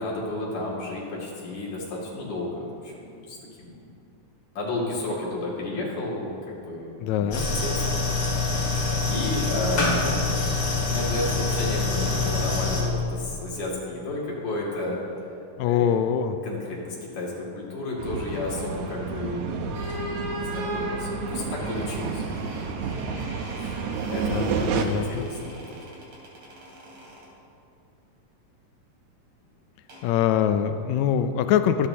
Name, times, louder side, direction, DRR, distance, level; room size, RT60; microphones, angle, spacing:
voice 1, 0.0-2.9 3.3-3.8 4.6-7.9 8.7-10.1 10.9-15.3 15.7-16.0 16.4-22.3 23.6-25.8, left 2 dB, 60° left, -5 dB, 3.8 m, -32 dB
voice 2, 7.0-7.5 15.6-16.4 24.3-25.3 30.0-31.9, left 9 dB, 85° left, 9 dB, 1.6 m, -23 dB
sound 1, 7.3-12.8, left 3 dB, 40° left, 2.9 m, -25 dB
sound 2, 18.0-24.9, right 5 dB, 70° right, 2.0 m, -30 dB
sound 3, 19.7-27.3 29.9-30.1, right 1 dB, 55° right, 3.8 m, -38 dB
24.5 x 9.8 x 2.9 m, 2.6 s
omnidirectional pair, 3.8 m